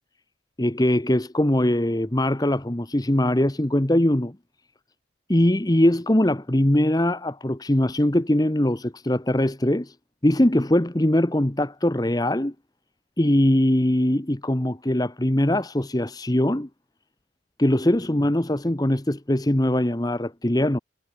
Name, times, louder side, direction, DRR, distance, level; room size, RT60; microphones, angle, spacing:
voice 1, 0.6-4.4 5.3-10.0 10.2-12.5 13.2-16.7 17.6-20.8, left 1 dB, 20° left, 1.0 m, -21 dB
head